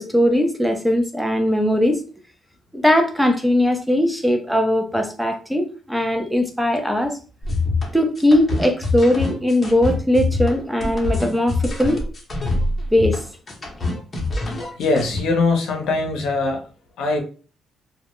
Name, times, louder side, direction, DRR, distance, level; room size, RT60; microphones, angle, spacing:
voice 1, 0.0-2.0 2.7-7.2 7.9-12.0 12.9-13.2, left 1 dB, 5° right, 4 dB, 0.5 m, -19 dB
sound 1, 7.4-15.2, left 3 dB, 35° left, 0.8 m, -24 dB
voice 2, 14.8-16.6 17.0-17.2, left 3 dB, 80° left, 3 dB, 0.7 m, -21 dB
2.2 x 2.0 x 2.9 m, 0.37 s
cardioid pair, 90°, 0 cm